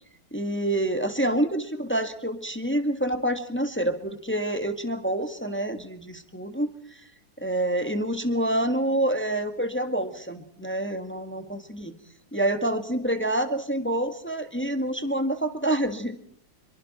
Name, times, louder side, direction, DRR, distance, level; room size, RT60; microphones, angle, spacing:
voice 1, 0.3-6.7 7.4-11.9 12.3-16.2, right 1 dB, 5° left, 8 dB, 1.7 m, -27 dB
29.0 x 23.0 x 4.4 m, 0.66 s
omnidirectional pair, 2.0 m